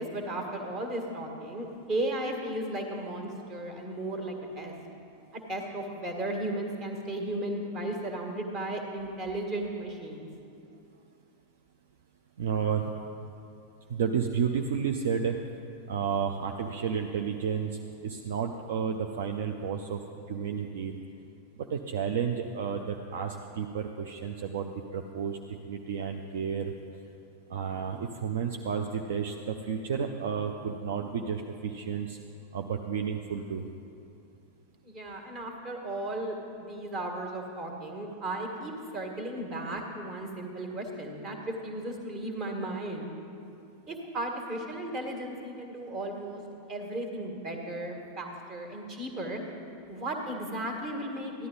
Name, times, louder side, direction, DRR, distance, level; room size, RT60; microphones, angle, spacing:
voice 1, 0.0-4.7 5.3-10.3 34.8-43.1 43.9-46.4 46.7-49.4 49.9-51.5, right 1 dB, 30° right, 3 dB, 1.7 m, -35 dB
voice 2, 12.4-12.9 13.9-15.4 15.9-20.0 20.3-21.0 21.7-26.7 27.5-32.2 32.5-33.6, right 7 dB, 60° right, 4 dB, 0.5 m, -31 dB
14.0 x 11.0 x 4.0 m, 2.6 s
figure-of-eight pair, 90°, 0 cm